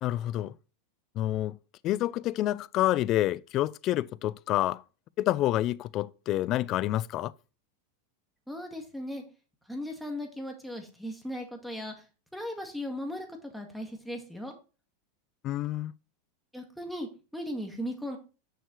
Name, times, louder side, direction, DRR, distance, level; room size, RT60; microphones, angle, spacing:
voice 1, 0.0-0.6 1.2-1.6 1.8-4.8 5.2-7.3 15.4-15.9, left 14 dB, 45° left, 0.3 m, -28 dB
voice 2, 8.5-9.2 9.7-12.0 12.3-14.5 16.5-18.2, equal, ahead, 1.9 m, -37 dB
6.5 x 6.3 x 3.2 m
hypercardioid pair, 115°, 0 cm